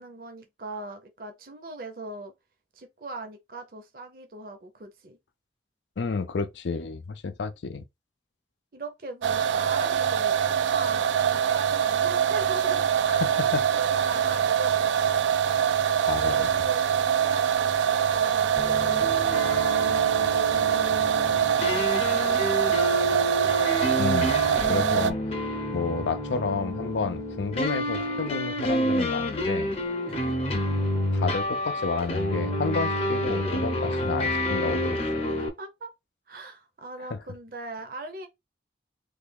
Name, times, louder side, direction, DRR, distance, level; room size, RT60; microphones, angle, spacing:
voice 1, 0.0-2.3 2.7-5.2 8.7-12.9 13.2-14.9 15.9-23.1 30.1-30.4 35.4-35.9 36.3-38.3, right 2 dB, 50° right, 0.6 m, -41 dB
voice 2, 6.0-7.8 13.1-13.7 16.1-16.6 24.0-25.2 25.7-29.7 31.1-35.0 37.1-37.2, left 4 dB, 85° left, 0.5 m, -30 dB
sound 1, 9.2-25.1, right 8 dB, 90° right, 0.3 m, -24 dB
sound 2, 18.6-35.5, left 1 dB, 35° left, 0.7 m, -29 dB
3.3 x 2.3 x 3.4 m
head